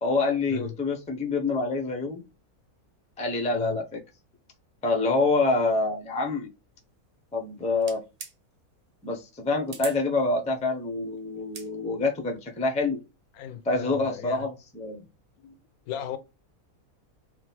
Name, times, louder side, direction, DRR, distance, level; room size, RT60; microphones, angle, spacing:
voice 1, 0.0-2.2 3.2-4.0 4.8-6.5 7.3-8.0 9.0-13.0 13.6-15.0, left 3 dB, 10° left, 0.5 m, -26 dB
sound 1, 7.8-8.3 9.7-10.0 11.4-11.7, right 4 dB, 45° right, 0.5 m, -39 dB
voice 2, 13.4-14.5 15.4-15.6 15.9-16.2, left 11 dB, 80° left, 1.0 m, -36 dB
3.9 x 2.4 x 4.1 m
omnidirectional pair, 1.6 m